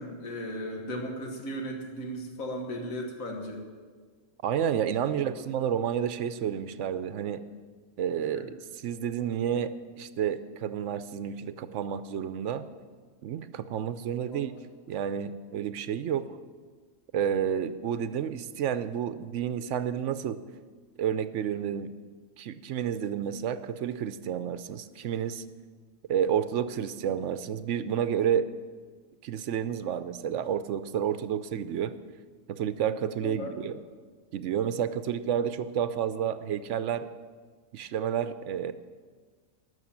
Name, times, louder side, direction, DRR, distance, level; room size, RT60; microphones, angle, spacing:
voice 1, 0.0-3.6 5.1-5.4 8.4-8.5 14.3-14.5 33.2-33.5, equal, 85° left, 2 dB, 1.8 m, -36 dB
voice 2, 4.4-7.4 8.0-12.7 13.2-14.5 14.9-16.3 17.1-20.4 21.0-21.9 22.4-25.4 26.1-28.5 29.2-31.9 32.5-33.8 34.3-37.1 37.7-38.7, right 9 dB, 70° right, 13 dB, 0.9 m, -30 dB
13.0 x 6.7 x 8.7 m, 1.5 s
omnidirectional pair, 1.4 m